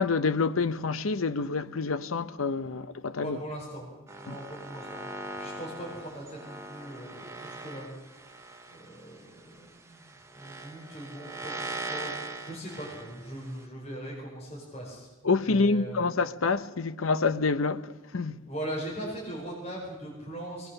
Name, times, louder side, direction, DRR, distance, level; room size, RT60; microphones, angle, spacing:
voice 1, 0.0-3.4 4.3-4.4 15.2-18.4, left 4 dB, 85° left, 0.8 m, -27 dB
voice 2, 3.2-3.9 4.1-7.9 8.7-15.1 15.4-16.0 18.5-20.7, right 1 dB, 30° left, 4.9 m, -40 dB
sound 1, 4.1-13.6, right 2 dB, 15° right, 1.1 m, -41 dB
22.0 x 19.5 x 6.6 m
head